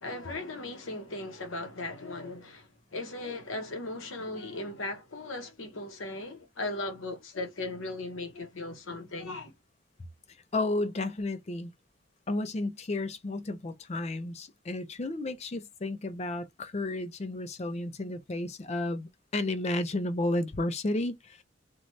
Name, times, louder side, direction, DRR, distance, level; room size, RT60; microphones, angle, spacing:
voice 1, 0.0-9.5, left 2 dB, 85° left, 0.9 m, -37 dB
voice 2, 10.5-11.7 12.3-21.4, left 2 dB, 35° left, 0.4 m, -32 dB
2.6 x 2.2 x 3.1 m
head